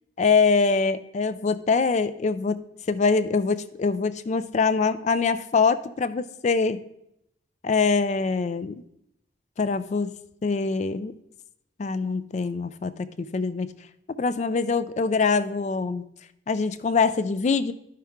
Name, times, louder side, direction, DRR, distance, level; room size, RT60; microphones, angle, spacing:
voice 1, 0.2-2.6 2.9-6.8 7.6-8.8 9.6-10.1 10.4-11.1 11.8-13.7 14.2-16.0 16.5-17.7, left 4 dB, 35° left, 12 dB, 0.3 m, -24 dB
11.5 x 5.6 x 3.6 m, 0.79 s
head